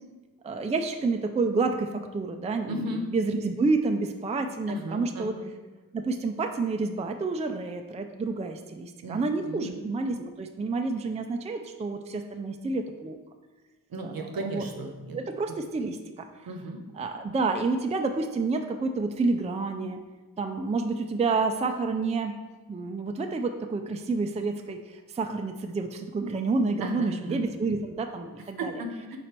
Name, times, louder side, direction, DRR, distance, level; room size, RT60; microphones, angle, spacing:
voice 1, 0.4-5.4 5.9-13.2 14.0-14.7 15.1-16.3 17.0-20.0 20.4-22.4 22.7-28.8, right 3 dB, 20° right, 5 dB, 0.4 m, -29 dB
voice 2, 2.7-3.0 4.7-5.5 9.0-9.2 9.4-9.7 13.9-15.2 15.5-15.6 16.5-16.8 26.8-27.4 28.6-29.2, right 1 dB, 65° right, 4 dB, 0.9 m, -35 dB
5.2 x 4.1 x 4.3 m, 1.2 s
cardioid pair, 80°, 37 cm